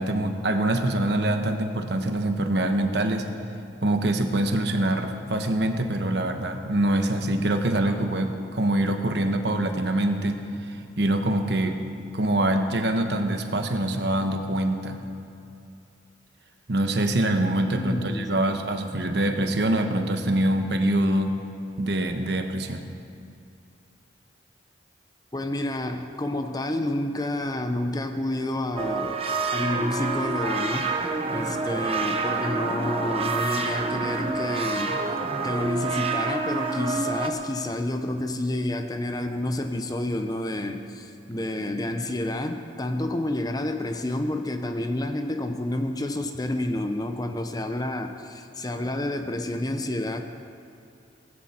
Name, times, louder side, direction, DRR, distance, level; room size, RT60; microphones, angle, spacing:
voice 1, 0.0-3.3 3.8-11.8 12.1-15.0 16.7-21.4 21.8-22.8, right 1 dB, 65° right, 6 dB, 1.2 m, -24 dB
voice 2, 17.7-18.4 25.3-29.1 29.5-30.9 31.3-35.0 35.4-50.2, left 1 dB, 20° left, 7 dB, 0.7 m, -29 dB
sound 1, 28.8-37.3, right 4 dB, 35° right, 1.0 m, -28 dB
18.0 x 16.0 x 4.4 m, 2.6 s
head